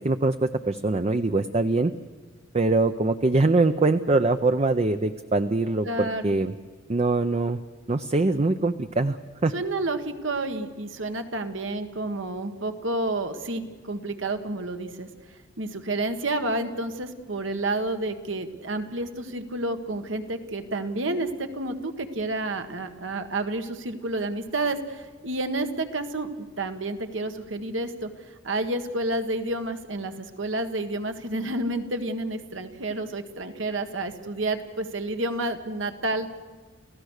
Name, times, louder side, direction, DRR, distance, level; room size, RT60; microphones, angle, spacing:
voice 1, 0.0-1.9 2.5-6.5 6.9-7.6 7.9-9.5, right 2 dB, 35° right, 9 dB, 0.6 m, -23 dB
voice 2, 5.9-6.4 9.5-15.1 15.6-28.1 28.4-36.3, right 2 dB, 75° right, 7 dB, 1.7 m, -30 dB
29.5 x 16.0 x 6.5 m, 1.5 s
head